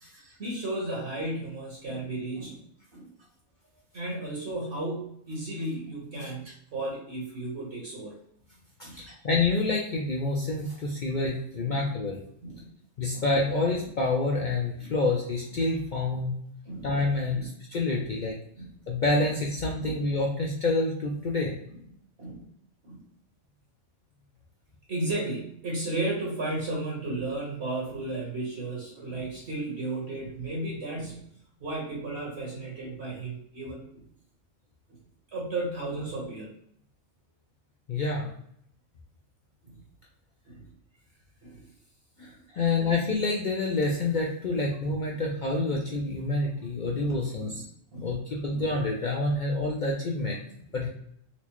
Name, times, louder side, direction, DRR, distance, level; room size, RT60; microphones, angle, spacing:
voice 1, 0.0-2.6 2.9-3.1 3.9-8.1 8.8-9.2 11.0-11.2 11.6-11.9 12.4-12.7 13.1-13.2 14.8-14.9 16.1-16.3 16.6-16.9 17.3-17.5 17.9-18.0 18.6-18.7 19.2-19.3 19.8-20.0 22.2-22.5 22.8-23.0 24.9-31.2 31.6-33.8 35.3-36.5 39.6-39.7 40.5-40.7 41.4-41.6 42.2-42.9 45.1-45.2 45.7-45.8 46.3-46.4 46.8-47.1 47.4-47.6 47.9-48.2 48.5-48.6 49.6-49.7, right 2 dB, 55° right, -3 dB, 1.3 m, -34 dB
voice 2, 8.8-12.2 13.0-16.3 16.8-18.4 18.9-21.5 37.9-38.3 42.2-42.3 42.6-47.6 48.0-50.4 50.7-50.9, left 2 dB, 60° left, -2 dB, 0.5 m, -27 dB
4.2 x 2.1 x 2.9 m, 0.70 s
omnidirectional pair, 1.4 m